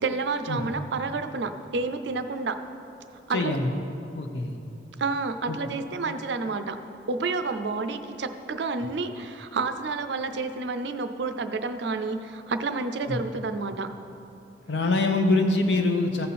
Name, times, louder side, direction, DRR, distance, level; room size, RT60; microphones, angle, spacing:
voice 1, 0.0-2.6 3.3-3.5 5.0-6.8 7.1-13.9, right 3 dB, 65° right, 9 dB, 0.5 m, -29 dB
voice 2, 3.3-3.7 4.1-4.6 5.5-5.6 13.1-13.2 14.7-16.3, left 2 dB, 65° left, 4 dB, 0.9 m, -24 dB
15.0 x 5.6 x 4.2 m, 2.9 s
head